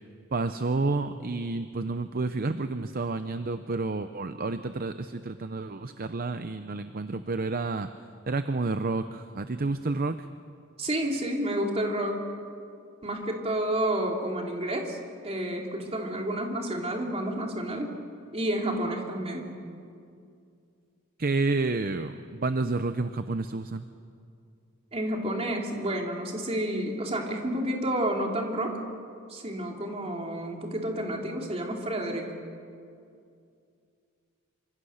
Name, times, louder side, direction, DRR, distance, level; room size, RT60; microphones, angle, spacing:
voice 1, 0.3-7.9 8.3-10.3 21.2-23.9, right 3 dB, 45° right, 10 dB, 0.7 m, -30 dB
voice 2, 10.8-12.3 13.0-15.0 15.2-17.9 18.3-19.5 24.9-28.8 29.3-32.3, right 1 dB, 30° right, 1 dB, 3.2 m, -30 dB
27.5 x 25.5 x 6.6 m, 2.4 s
head